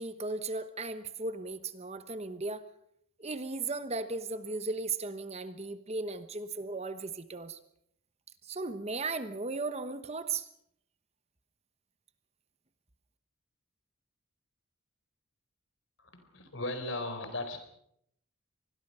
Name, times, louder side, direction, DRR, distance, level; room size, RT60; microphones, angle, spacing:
voice 1, 0.0-2.6 3.2-7.6 8.4-10.5, right 3 dB, 30° right, 11 dB, 1.1 m, -36 dB
voice 2, 16.0-17.6, left 2 dB, 60° left, 8 dB, 4.2 m, -37 dB
26.0 x 20.5 x 5.6 m, 0.72 s
head